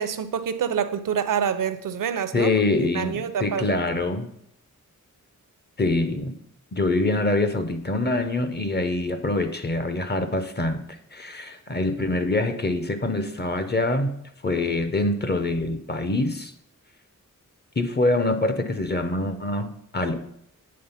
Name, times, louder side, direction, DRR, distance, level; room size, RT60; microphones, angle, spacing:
voice 1, 0.0-2.5 2.9-3.8, right 8 dB, 80° right, 11 dB, 0.6 m, -26 dB
voice 2, 2.3-4.3 5.8-6.3 6.7-14.1 14.4-16.5 17.8-20.2, left 2 dB, 30° left, 9 dB, 0.6 m, -25 dB
8.6 x 3.7 x 5.6 m, 0.73 s
wide cardioid pair, 120°, 32 cm